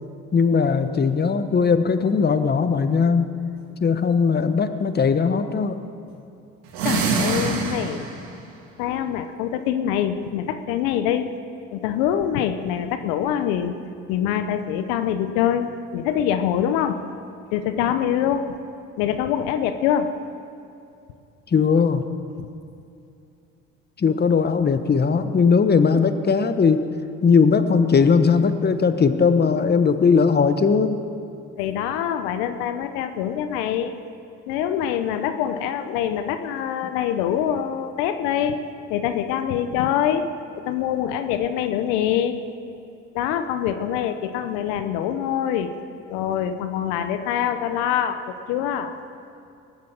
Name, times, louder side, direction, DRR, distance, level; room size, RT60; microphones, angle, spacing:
voice 1, 0.3-3.3 3.8-5.8 21.5-22.1 24.0-26.9 27.2-31.0, left 5 dB, 30° left, 10 dB, 1.1 m, -19 dB
sound 1, 6.7-8.3, right 4 dB, 85° right, 2.4 m, -24 dB
voice 2, 6.8-8.0 8.8-11.3 11.7-13.8 14.1-17.0 17.5-18.6 19.0-20.2 31.6-34.0 34.5-38.6 38.9-42.5 43.1-45.7 46.1-49.0, left 9 dB, 85° left, 9 dB, 0.9 m, -24 dB
19.5 x 7.5 x 8.9 m, 2.6 s
supercardioid pair, 75°, 34 cm